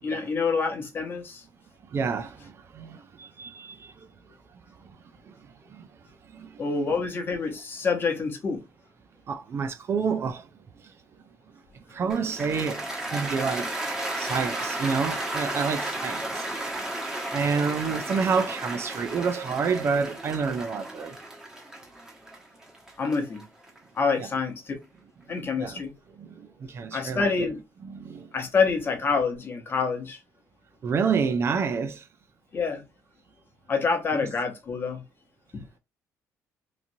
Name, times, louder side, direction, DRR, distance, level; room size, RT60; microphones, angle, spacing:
voice 1, 0.0-1.4 6.6-8.6 23.0-23.4 23.9-24.7 25.3-25.9 26.9-27.6 28.3-30.2 32.5-32.8 33.7-35.0 35.5-35.6, left 5 dB, 35° left, 1.0 m, -27 dB
voice 2, 1.9-3.9 5.3-5.4 5.7-5.9 6.3-6.6 9.3-10.5 11.9-13.7 14.2-16.4 17.3-21.2 24.2-24.3 25.3-25.8 26.2-27.3 27.8-28.3 30.8-32.0 34.1-34.3, right 5 dB, 45° right, 0.4 m, -29 dB
Cheering / Applause, 12.1-24.3, right 1 dB, 10° right, 1.0 m, -34 dB
3.0 x 2.5 x 2.6 m
cardioid pair, 115°, 6 cm